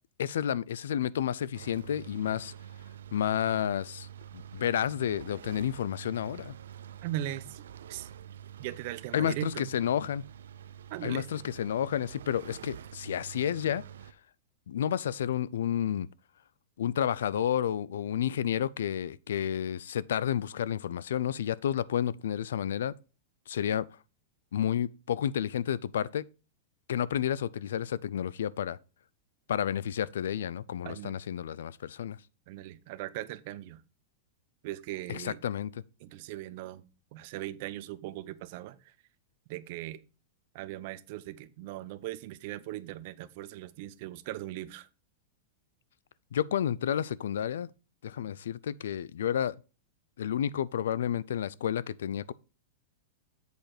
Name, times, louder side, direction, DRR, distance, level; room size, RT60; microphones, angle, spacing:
voice 1, 0.2-2.5 3.1-4.1 4.3-6.5 9.1-10.2 11.0-13.8 14.7-16.1 16.8-22.9 23.5-23.9 24.5-26.3 26.9-28.8 29.5-32.2 35.1-35.7 46.3-47.7 48.0-49.6 50.2-52.3, left 9 dB, 85° left, 0.4 m, -30 dB
sound 1, 1.5-14.1, right 9 dB, 90° right, 0.5 m, -47 dB
voice 2, 7.0-7.6 7.9-8.1 8.6-9.7 10.9-11.3 30.8-31.2 32.5-33.8 34.6-35.4 36.0-36.8 37.1-38.8 39.5-40.0 40.5-44.9, right 14 dB, 50° right, 0.7 m, -39 dB
8.1 x 4.4 x 4.8 m
supercardioid pair, 145°, 0 cm